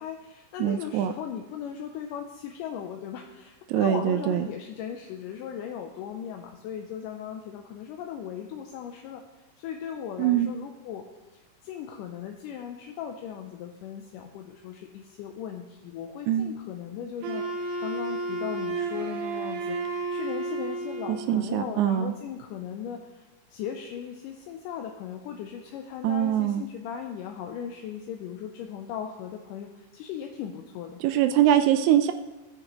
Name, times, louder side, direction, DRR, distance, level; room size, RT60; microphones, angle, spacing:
voice 1, 0.0-9.2 9.6-11.1 11.6-23.2 23.5-31.0, left 8 dB, 80° left, 3 dB, 2.2 m, -38 dB
voice 2, 0.6-1.1 3.7-4.5 10.2-10.5 16.3-16.5 21.1-22.1 26.0-26.6 31.0-32.1, right 11 dB, 90° right, 8 dB, 1.6 m, -23 dB
Wind instrument woodwind instrument, 17.2-21.3, right 3 dB, 70° right, 2.5 m, -32 dB
17.5 x 6.6 x 3.0 m, 1.2 s
omnidirectional pair, 3.9 m